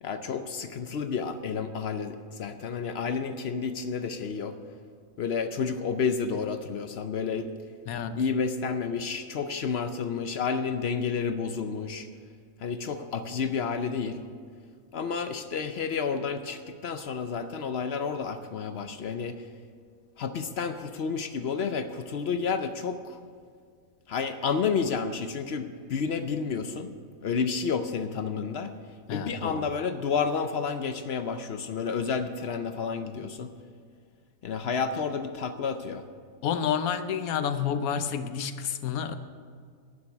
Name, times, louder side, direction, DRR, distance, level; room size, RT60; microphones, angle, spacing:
voice 1, 0.0-4.6 5.2-7.5 8.1-12.1 12.6-14.2 14.9-19.5 20.2-23.2 24.1-26.9 27.2-28.8 29.1-33.5 34.4-36.1, left 5 dB, 60° left, 9 dB, 0.8 m, -30 dB
voice 2, 7.9-8.2 29.1-29.7 36.4-39.1, left 7 dB, 85° left, 11 dB, 1.2 m, -29 dB
10.5 x 7.3 x 9.5 m, 2.1 s
omnidirectional pair, 1.4 m